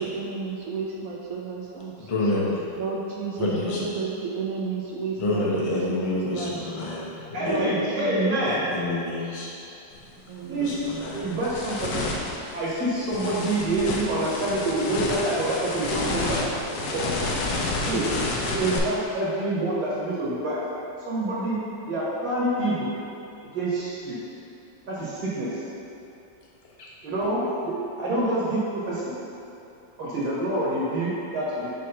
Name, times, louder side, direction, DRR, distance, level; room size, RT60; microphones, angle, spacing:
voice 1, 0.0-2.1 2.8-6.5 7.4-8.2 10.3-10.7, right 4 dB, 80° right, -2 dB, 0.7 m, -32 dB
voice 2, 2.0-2.7 3.4-3.9 5.2-7.6 8.4-9.5 10.6-11.3 26.8-26.9, left 2 dB, 35° left, -5 dB, 0.5 m, -28 dB
voice 3, 7.3-8.6 10.5-10.7 11.1-12.0 12.5-16.4 16.7-17.0 17.8-18.2 18.5-20.6 21.0-21.6 21.9-22.9 23.5-24.2 24.9-25.6 27.0-29.1 30.0-31.7, right 1 dB, 60° right, -10 dB, 1.7 m, -26 dB
sound 1, 9.9-10.1 10.6-18.8, left 2 dB, 65° left, 1.1 m, -30 dB
5.6 x 3.2 x 5.4 m, 2.8 s
omnidirectional pair, 2.0 m